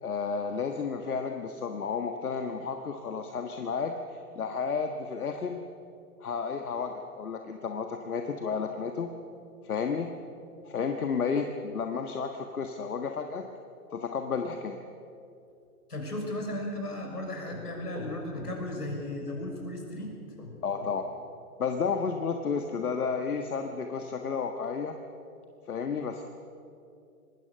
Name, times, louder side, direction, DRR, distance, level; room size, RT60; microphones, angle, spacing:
voice 1, 0.0-5.6 6.2-9.1 9.6-10.1 10.6-13.5 13.9-14.8 20.6-21.0 21.6-24.9 25.7-26.2, left 5 dB, 70° left, 5 dB, 1.7 m, -32 dB
voice 2, 15.9-20.1 20.4-20.9, left 1 dB, 85° left, 1 dB, 6.4 m, -35 dB
25.0 x 20.0 x 6.7 m, 2.6 s
figure-of-eight pair, 120°, 46 cm